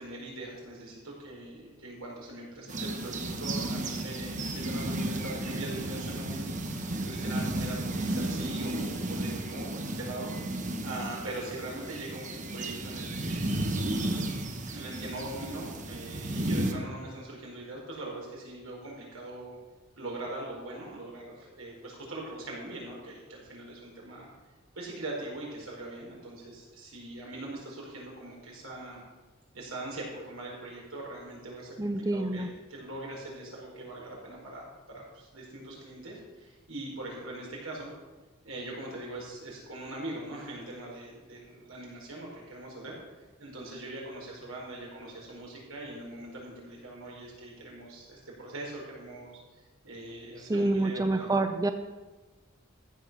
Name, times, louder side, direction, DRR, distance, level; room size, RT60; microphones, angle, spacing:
voice 1, 0.0-10.3 10.8-13.7 14.7-19.6 20.0-24.3 24.7-29.0 29.5-37.9 38.4-43.0 43.4-49.4 49.8-51.3, right 2 dB, 80° right, -2 dB, 4.8 m, -41 dB
sound 1, 2.7-16.7, right 1 dB, 35° right, 1.2 m, -33 dB
voice 2, 31.8-32.5 50.4-51.7, right 2 dB, 15° right, 8 dB, 0.5 m, -27 dB
14.5 x 8.2 x 6.2 m, 1.2 s
head